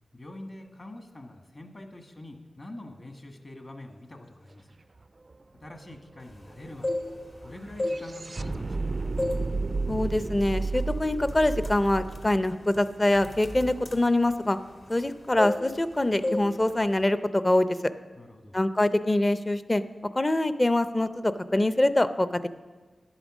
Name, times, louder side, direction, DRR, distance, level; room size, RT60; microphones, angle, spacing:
voice 1, 0.1-4.7 5.6-7.0 7.4-9.0 18.2-18.6, left 1 dB, 35° left, 4 dB, 1.5 m, -45 dB
sound 1, 5.0-5.1 5.3-13.5, right 3 dB, 40° right, 0.3 m, -33 dB
sound 2, 6.6-7.4 7.7-8.8 9.2-9.5 9.9-10.1 10.7-10.9 11.2-15.1 15.4-15.9 16.2-16.5 16.8-17.1, left 1 dB, 55° left, 1.6 m, -32 dB
voice 2, 9.9-14.6 14.9-17.7 18.5-19.8 20.2-22.5, left 1 dB, 20° left, 12 dB, 0.5 m, -24 dB
11.0 x 9.0 x 6.2 m, 1.3 s
wide cardioid pair, 80°, 0 cm